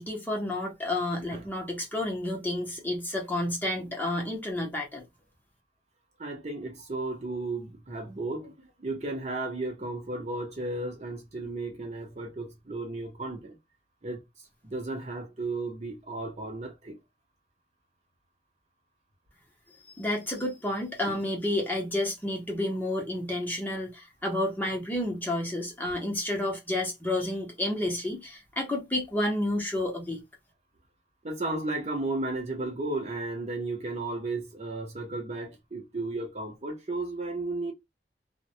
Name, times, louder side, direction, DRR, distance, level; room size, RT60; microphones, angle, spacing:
voice 1, 0.0-5.0 19.9-30.2, left 1 dB, 10° left, 0.7 m, -30 dB
voice 2, 6.2-13.6 14.0-14.2 14.6-17.0 21.1-21.2 31.2-37.7, right 2 dB, 40° right, 0.7 m, -34 dB
2.2 x 2.1 x 2.6 m
head